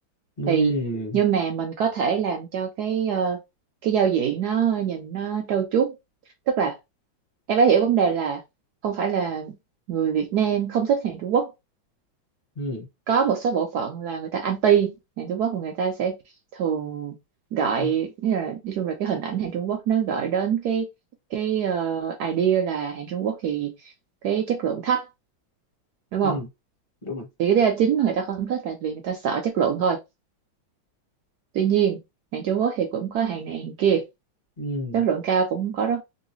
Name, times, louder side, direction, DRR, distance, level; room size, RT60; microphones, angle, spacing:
voice 1, 0.4-1.2 12.6-12.9 17.8-17.9 26.2-26.5 27.0-27.3 34.6-35.0, right 1 dB, 35° left, 1.1 m, -29 dB
voice 2, 1.1-3.4 3.8-6.0 6.5-6.8 7.5-8.4 8.8-9.6 9.9-11.5 13.1-16.2 16.5-17.2 17.5-20.9 21.3-23.9 24.2-25.1 26.1-26.4 27.4-30.0 31.5-32.0 32.3-34.1 34.9-36.0, right 7 dB, 75° right, 0.9 m, -24 dB
3.1 x 2.7 x 3.0 m
omnidirectional pair, 2.2 m